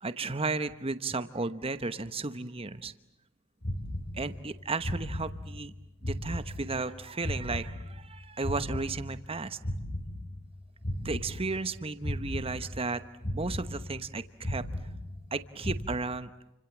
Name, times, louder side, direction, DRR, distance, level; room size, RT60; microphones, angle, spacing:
voice 1, 0.0-2.9 4.1-5.7 6.0-9.6 11.0-14.6 15.3-16.3, right 3 dB, 25° right, 12 dB, 1.0 m, -34 dB
sound 1, 3.6-4.5 4.8-5.7 6.0-8.1 8.4-10.5 10.8-11.7 12.0-12.9 13.2-14.1 14.4-15.3 15.6-15.8, left 1 dB, 50° left, 4.7 m, -36 dB
29.0 x 26.0 x 7.3 m, 0.88 s
head